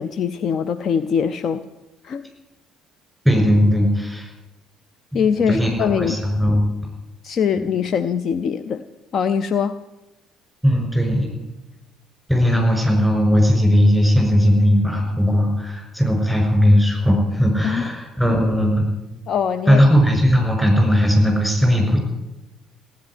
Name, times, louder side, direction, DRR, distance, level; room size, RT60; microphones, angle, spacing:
voice 1, 0.0-1.6 2.0-2.3 5.1-6.2 7.2-8.8 9.1-9.8 17.6-17.9 19.3-19.8, left 7 dB, 45° left, 13 dB, 0.6 m, -22 dB
voice 2, 3.2-4.3 5.1-6.6 10.6-11.3 12.3-18.8 19.7-22.0, equal, 5° left, 2 dB, 6.2 m, -17 dB
16.5 x 8.9 x 9.8 m, 1.0 s
figure-of-eight pair, 50°, 0 cm